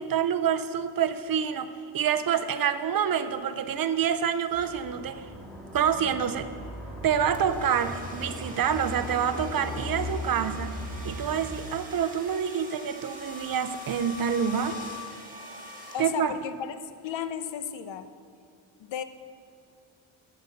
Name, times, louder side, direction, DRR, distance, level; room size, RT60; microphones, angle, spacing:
voice 1, 0.0-5.3 5.7-6.5 7.0-10.8 11.0-14.8 16.0-16.3, right 8 dB, 50° right, 10 dB, 0.6 m, -27 dB
sound 1, 4.5-11.5, left 1 dB, ahead, 1.9 m, -38 dB
sound 2, 7.3-16.5, left 1 dB, 15° right, 1.6 m, -43 dB
voice 2, 15.9-16.7 17.0-18.1 18.8-19.0, left 9 dB, 70° left, 11 dB, 0.7 m, -34 dB
12.0 x 4.3 x 6.9 m, 2.4 s
cardioid pair, 115°, 47 cm